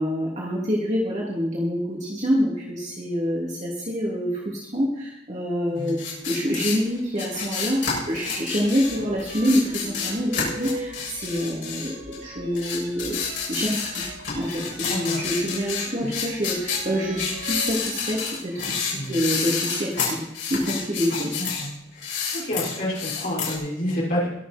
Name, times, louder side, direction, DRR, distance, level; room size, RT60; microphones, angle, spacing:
voice 1, 0.0-6.0 6.3-7.8 8.1-11.9 12.2-13.2 13.5-14.0 14.3-20.2 20.5-21.3, equal, 35° right, -5 dB, 3.1 m, -26 dB
sound 1, 5.9-12.2 12.5-21.7 21.9-23.5, left 6 dB, 60° left, 7.1 m, -29 dB
sound 2, 8.6-18.2, right 1 dB, 50° right, 4.0 m, -41 dB
voice 2, 14.8-15.2 16.0-16.1 18.9-19.2 21.4-21.7 22.3-24.3, left 1 dB, 45° left, -6 dB, 5.7 m, -28 dB
22.5 x 8.3 x 4.5 m, 0.84 s
head